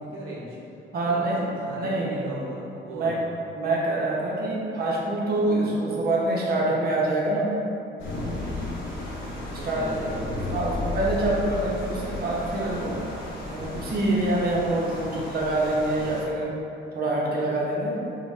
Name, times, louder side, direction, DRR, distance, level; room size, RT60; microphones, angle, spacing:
voice 1, 0.0-0.6 1.0-1.3 1.6-3.3 5.6-5.8 8.4-8.8 9.4-10.6 12.7-13.1 15.9-16.1 17.9-18.0, right 1 dB, 90° right, -5 dB, 0.6 m, -38 dB
voice 2, 0.9-1.4 1.7-2.2 2.9-3.2 3.6-7.5 9.5-9.8 10.5-12.9 13.4-16.5 16.9-18.0, right 2 dB, 50° right, -4 dB, 0.8 m, -25 dB
sound 1, 8.0-16.2, left 2 dB, 75° left, 1.0 m, -34 dB
4.0 x 2.1 x 3.1 m, 2.6 s
cardioid pair, 90°, 20 cm